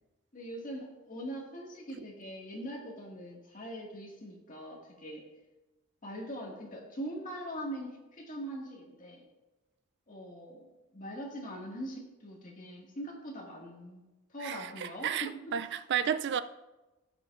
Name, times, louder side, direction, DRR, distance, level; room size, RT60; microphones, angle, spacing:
voice 1, 0.3-5.3 6.0-9.2 10.1-10.7 10.9-14.0 14.3-15.5, equal, 35° left, 1.9 m, -42 dB
voice 2, 14.4-16.4, right 8 dB, 50° right, 0.4 m, -32 dB
16.5 x 6.3 x 2.5 m
head